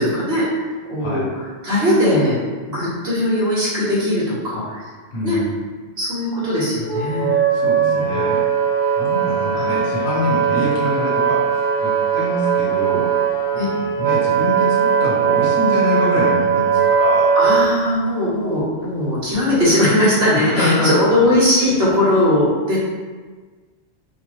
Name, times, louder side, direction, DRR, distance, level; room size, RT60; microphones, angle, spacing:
voice 1, 0.0-2.4 2.7-4.8 5.2-5.4 6.0-7.3 7.8-8.2 9.5-9.7 13.5-13.6 17.3-22.8, left 1 dB, 65° right, -10 dB, 1.6 m, -19 dB
voice 2, 5.1-5.5 7.5-8.4 9.0-13.1 13.5-17.3 20.3-20.9, left 1 dB, 70° left, -8 dB, 1.5 m, -25 dB
Wind instrument woodwind instrument, 6.8-17.7, right 7 dB, 45° right, 1.5 m, -19 dB
5.1 x 2.2 x 3.0 m, 1.4 s
omnidirectional pair, 1.1 m